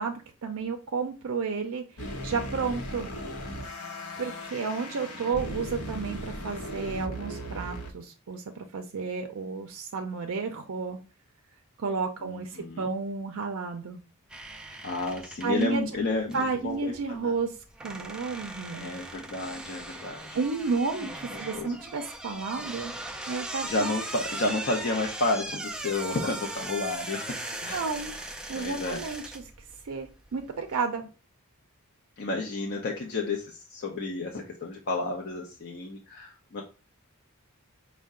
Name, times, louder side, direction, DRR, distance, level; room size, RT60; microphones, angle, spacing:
voice 1, 0.0-3.1 4.2-11.0 11.8-14.0 15.4-15.9 16.3-17.6 17.8-18.9 20.3-22.9 23.3-24.0 27.7-28.2 28.5-29.4 29.8-31.0, right 4 dB, 65° right, 4 dB, 0.5 m, -32 dB
sound 1, 2.0-7.9, equal, 80° left, 0.9 m, -37 dB
voice 2, 12.2-12.9 14.8-17.4 18.7-20.4 21.0-21.1 21.5-21.8 23.6-27.8 28.6-29.0 32.2-36.6, left 2 dB, 50° left, 0 dB, 0.6 m, -31 dB
sound 2, 14.3-30.8, right 2 dB, 5° right, 0.3 m, -39 dB
5.4 x 2.2 x 3.6 m, 0.33 s
head